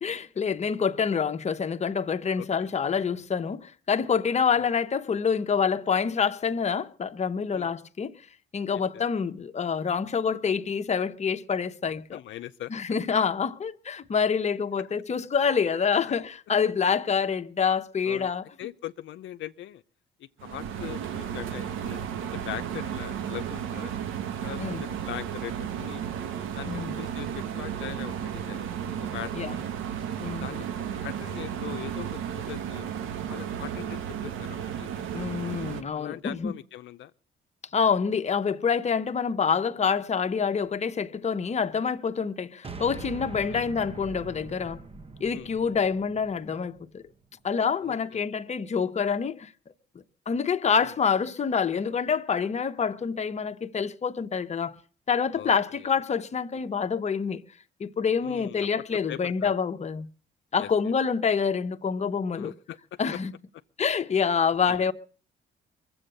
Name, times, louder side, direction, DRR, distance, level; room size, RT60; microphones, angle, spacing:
voice 1, 0.0-8.1 8.5-12.2 12.7-18.5 24.6-24.8 26.7-27.0 28.9-29.0 29.3-29.5 30.2-30.5 35.1-36.5 37.7-44.8 45.2-47.0 47.4-49.5 49.9-54.8 55.1-57.4 57.8-60.1 60.5-62.5 63.0-63.3 63.8-64.9, left 6 dB, 35° left, 0.9 m, -27 dB
voice 2, 2.4-2.7 7.5-7.7 8.7-9.0 12.1-12.7 14.8-14.9 18.1-18.3 18.6-19.8 20.2-23.9 24.4-26.0 26.5-28.6 29.1-29.7 30.4-32.9 33.3-35.1 35.9-37.1 43.5-43.6 45.3-45.5 47.8-48.3 50.8-50.9 55.3-55.5 58.2-58.7 59.1-59.5 60.6-60.7 62.3-62.8 64.7-64.9, left 13 dB, 75° left, 0.6 m, -41 dB
sound 1, 20.4-35.8, right 9 dB, 90° right, 1.2 m, -34 dB
sound 2, 42.6-47.1, right 4 dB, 30° right, 1.0 m, -42 dB
22.5 x 7.9 x 6.6 m
cardioid pair, 90°, 20 cm